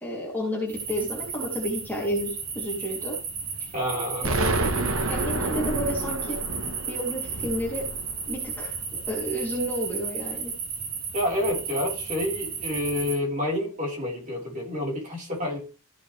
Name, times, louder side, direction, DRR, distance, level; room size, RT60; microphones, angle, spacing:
voice 1, 0.0-3.2 4.2-4.6 5.1-6.4 6.9-7.8 8.3-10.5, equal, 10° left, -3 dB, 3.0 m, -31 dB
sound 1, 0.7-13.1, right 5 dB, 85° right, 3.5 m, -34 dB
voice 2, 3.7-4.3 11.1-15.6, left 1 dB, 35° right, -3 dB, 4.5 m, -28 dB
Explosion, 4.2-9.1, right 2 dB, 65° right, 1.2 m, -29 dB
14.5 x 6.7 x 3.4 m, 0.34 s
head